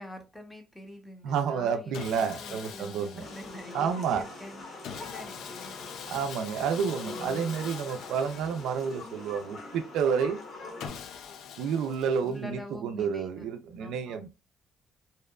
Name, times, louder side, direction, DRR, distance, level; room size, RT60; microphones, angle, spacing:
voice 1, 0.0-5.9 12.2-13.5 13.8-14.3, left 1 dB, 5° left, 0.6 m, -46 dB
voice 2, 1.2-3.2 3.7-4.2 6.1-10.4 11.6-14.3, right 6 dB, 85° right, 0.3 m, -30 dB
Sawing, 1.9-4.0 4.8-9.4 10.8-12.6, left 7 dB, 70° left, 0.3 m, -44 dB
sound 1, 3.2-10.9, left 2 dB, 55° left, 0.9 m, -44 dB
2.7 x 2.2 x 2.2 m
cardioid pair, 130°, 0 cm